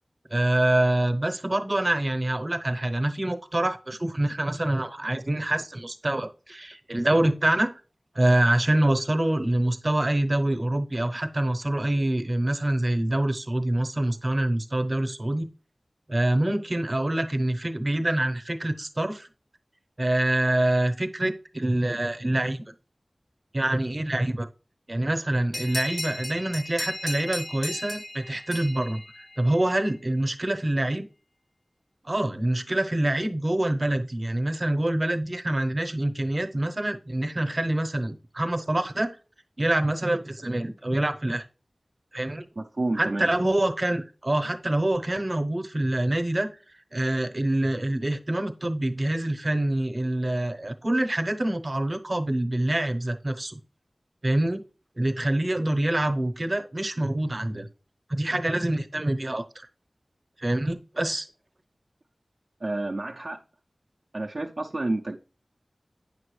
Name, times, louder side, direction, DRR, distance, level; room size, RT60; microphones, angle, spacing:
voice 1, 0.3-7.8 8.1-15.5 16.1-19.3 20.0-22.7 23.5-24.5 24.9-29.0 29.4-31.1 32.0-39.2 39.6-41.4 42.1-42.5 43.0-46.5 46.9-53.6 54.2-54.6 55.0-57.7 58.1-59.7 60.4-61.3, right 1 dB, 45° right, 8 dB, 0.9 m, -26 dB
sound 1, 25.5-29.8, left 1 dB, 30° left, 0.4 m, -36 dB
voice 2, 42.6-43.3 62.6-63.4 64.1-65.2, right 2 dB, 65° right, 0 dB, 0.5 m, -29 dB
8.8 x 6.1 x 3.2 m, 0.36 s
wide cardioid pair, 45°, 0 cm